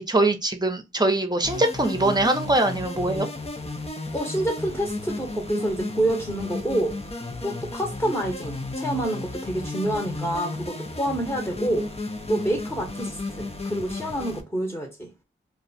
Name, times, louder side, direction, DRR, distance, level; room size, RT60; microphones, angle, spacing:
voice 1, 0.0-3.3, right 2 dB, 20° right, 0.9 m, -22 dB
sound 1, 1.4-14.4, left 2 dB, 30° left, 0.7 m, -33 dB
voice 2, 4.1-7.0 7.4-11.9 12.3-15.1, right 1 dB, 10° left, 1.1 m, -27 dB
2.4 x 2.3 x 4.0 m
cardioid pair, 50°, 21 cm